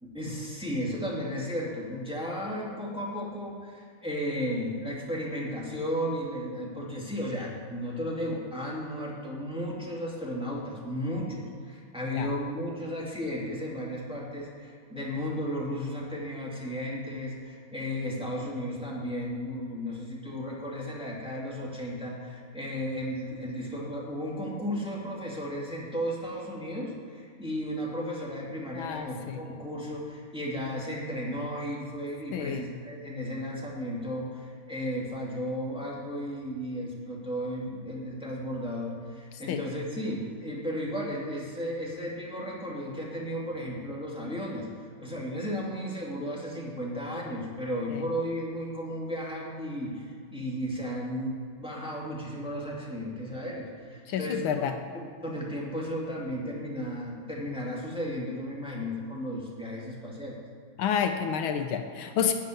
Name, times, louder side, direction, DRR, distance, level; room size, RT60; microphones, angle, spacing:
voice 1, 0.0-44.7 45.0-54.7 54.9-60.4, equal, 5° right, -4 dB, 2.1 m, -34 dB
voice 2, 28.7-29.4 32.3-32.7 39.5-39.6 47.9-48.1 54.1-54.8 60.8-62.3, left 8 dB, 80° left, 7 dB, 1.5 m, -29 dB
12.5 x 5.9 x 9.0 m, 2.3 s
omnidirectional pair, 2.3 m